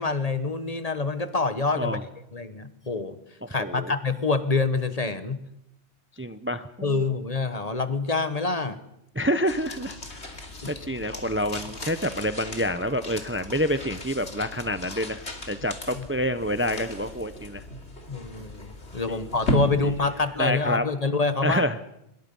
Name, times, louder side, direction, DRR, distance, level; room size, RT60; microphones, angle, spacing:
voice 1, 0.0-2.0 2.3-3.2 3.5-5.4 6.8-8.8 10.6-10.9 15.9-16.1 18.1-21.7, left 3 dB, 35° left, 11 dB, 1.3 m, -26 dB
voice 2, 3.6-3.9 6.2-7.0 9.2-10.0 10.7-17.6 19.1-19.6 19.8-19.9 20.4-20.8 21.4-21.8, equal, 15° right, 11 dB, 0.7 m, -28 dB
sound 1, 9.5-20.8, left 1 dB, 80° left, 3.1 m, -36 dB
25.0 x 22.5 x 5.5 m, 0.82 s
omnidirectional pair, 1.1 m